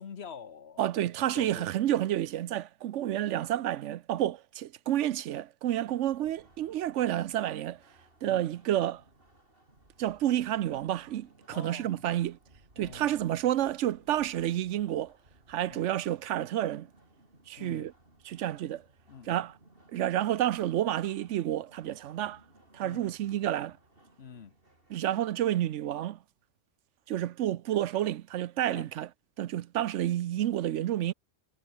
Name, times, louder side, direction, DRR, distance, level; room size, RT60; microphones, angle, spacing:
voice 1, 0.0-0.9 1.3-1.7 8.2-8.4 11.5-12.0 12.8-13.2 15.7-15.9 17.6-17.9 19.1-19.4 22.8-23.1 24.2-24.5 28.7-28.8, left 7 dB, 60° left, 1.4 m, -46 dB
voice 2, 0.8-7.8 8.2-9.0 10.0-12.4 12.8-15.1 15.5-16.9 17.5-17.9 18.2-18.8 19.2-19.6 19.9-22.4 22.7-23.8 24.9-26.2 27.1-29.1 29.4-31.1, right 12 dB, 85° right, 1.0 m, -30 dB
sound 1, 5.7-25.4, right 1 dB, 50° right, 6.2 m, -61 dB
omnidirectional pair, 1.2 m